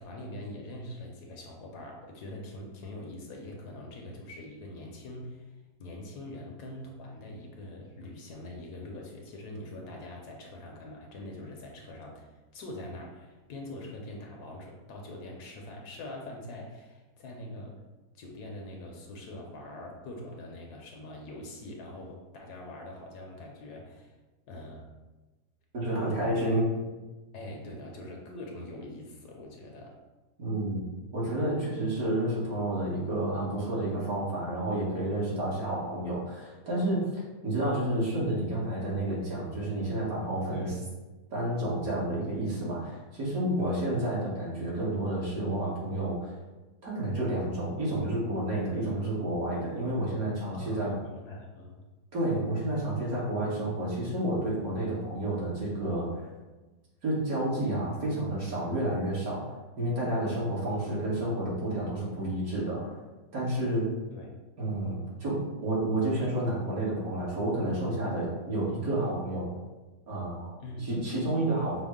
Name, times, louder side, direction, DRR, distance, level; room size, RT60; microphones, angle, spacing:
voice 1, 0.0-5.5 5.8-17.8 18.1-24.1 24.5-24.9 25.9-26.4 27.3-30.0 40.5-40.8 43.6-43.8 48.8-49.0 50.5-51.8 60.7-60.9 64.1-64.3 70.6-70.9, left 1 dB, 70° left, 0 dB, 1.1 m, -43 dB
voice 2, 25.7-26.7 30.4-30.8 31.1-40.7 41.3-46.3 46.8-50.9 52.1-56.2 57.0-59.5 59.8-62.9 63.3-63.9 64.6-69.5 70.1-70.5 70.8-71.8, right 1 dB, 55° right, -6 dB, 1.6 m, -30 dB
6.0 x 2.0 x 3.6 m, 1.2 s
omnidirectional pair, 1.9 m